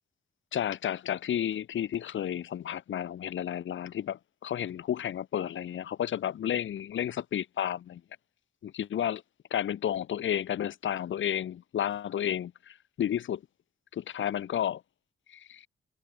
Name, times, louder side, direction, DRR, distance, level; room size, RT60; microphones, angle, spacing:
voice 1, 0.5-8.0 8.6-9.2 9.5-13.4 13.9-14.8 15.3-15.6, left 10 dB, 85° left, 3.8 m, -32 dB
cardioid pair, 70°, 19 cm